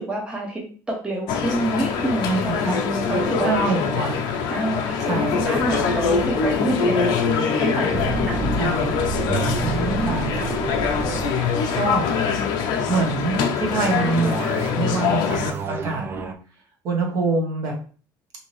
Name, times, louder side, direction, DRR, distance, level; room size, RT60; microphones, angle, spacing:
voice 1, 0.0-3.7 4.5-7.2 7.6-8.6 9.2-9.9, right 1 dB, 10° right, -1 dB, 0.7 m, -28 dB
sound 1, 1.3-15.5, left 6 dB, 70° left, 0.5 m, -23 dB
voice 2, 2.2-2.8 3.4-4.3 5.0-5.5 8.6-8.9 10.0-10.5 11.2-11.4 11.7-12.1 12.9-16.1 16.8-17.7, right 3 dB, 55° right, 1 dB, 1.0 m, -25 dB
sound 2, 5.2-6.6 7.9-12.1 13.9-14.9 15.2-16.3, right 5 dB, 30° right, 0.3 m, -30 dB
2.7 x 2.6 x 3.1 m, 0.40 s
cardioid pair, 140°, 8 cm